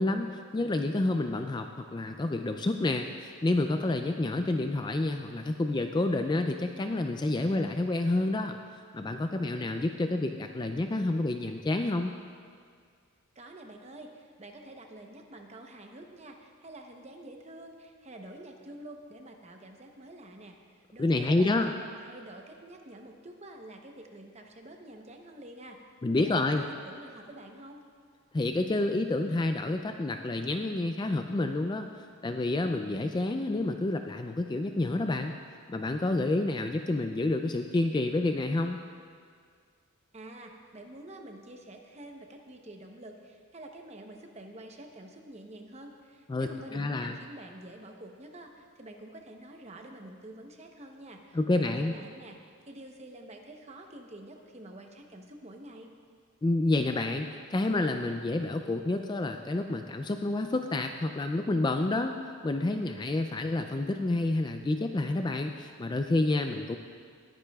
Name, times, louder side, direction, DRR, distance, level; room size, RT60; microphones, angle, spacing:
voice 1, 0.0-8.6 8.9-12.1 21.0-21.7 26.0-26.6 28.3-35.3 35.7-38.8 46.3-47.2 51.3-51.9 56.4-66.8, left 2 dB, 20° left, 6 dB, 0.3 m, -29 dB
voice 2, 13.3-25.8 26.2-27.8 40.1-55.9, right 1 dB, 30° right, 3 dB, 0.8 m, -48 dB
20.0 x 9.9 x 2.3 m, 2.1 s
head